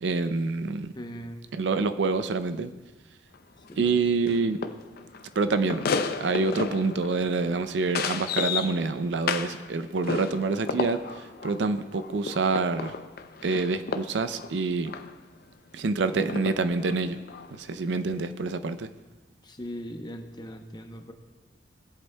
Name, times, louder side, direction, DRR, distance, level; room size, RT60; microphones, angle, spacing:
voice 1, 0.0-0.9 1.5-2.7 3.8-4.6 5.4-5.8 6.2-12.9 13.4-14.9 15.7-17.2 17.5-18.9, right 3 dB, 70° right, 11 dB, 0.5 m, -27 dB
voice 2, 1.0-1.4 3.7-4.0 19.4-21.1, equal, 25° left, 5 dB, 0.8 m, -39 dB
sound 1, 3.3-3.4 3.6-3.9 4.3-9.7 10.0-15.1 16.2-17.5 17.9-18.0, left 5 dB, 55° left, 0.5 m, -33 dB
20.0 x 8.0 x 2.2 m, 1.3 s
head